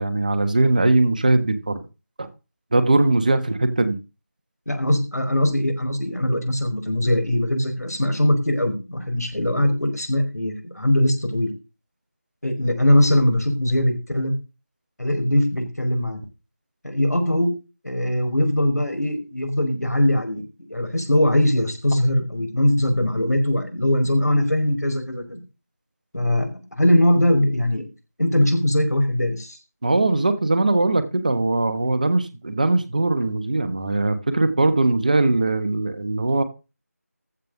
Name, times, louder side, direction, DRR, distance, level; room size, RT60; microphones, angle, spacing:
voice 1, 0.0-1.8 2.2-2.3 2.7-4.0 29.8-36.4, right 2 dB, 30° right, 11 dB, 1.3 m, -20 dB
voice 2, 4.7-11.5 12.4-14.3 15.0-16.2 16.8-17.6 17.8-20.4 20.7-25.4 26.1-26.5 26.8-27.9 28.2-29.6, left 1 dB, 75° left, 4 dB, 5.2 m, -21 dB
15.0 x 5.4 x 6.7 m, 0.30 s
figure-of-eight pair, 170°, 9 cm